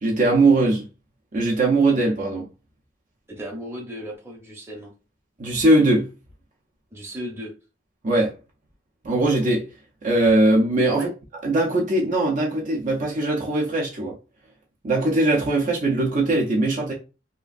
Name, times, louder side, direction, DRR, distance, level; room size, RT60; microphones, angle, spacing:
voice 1, 0.0-0.8 1.3-2.4 5.4-6.1 8.0-8.3 9.0-9.6 10.0-11.1 11.4-14.1 14.8-16.9, right 2 dB, 45° right, 0.6 m, -20 dB
voice 2, 3.3-4.9 6.9-7.5 10.9-11.1, equal, 15° right, 0.8 m, -35 dB
2.9 x 2.4 x 2.4 m
head